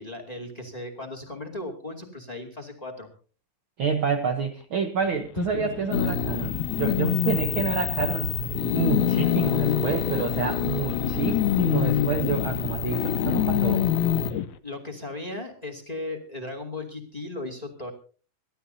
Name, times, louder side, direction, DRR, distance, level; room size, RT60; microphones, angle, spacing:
voice 1, 0.0-3.1 14.6-17.9, left 2 dB, 15° left, 3 dB, 1.9 m, -36 dB
voice 2, 3.8-8.4 8.7-13.8, right 6 dB, 75° right, 4 dB, 1.1 m, -28 dB
sound 1, 5.4-14.5, left 11 dB, 75° left, 1.9 m, -28 dB
sound 2, 5.9-14.3, left 7 dB, 90° left, 3.0 m, -28 dB
26.5 x 13.0 x 2.8 m, 0.39 s
omnidirectional pair, 4.1 m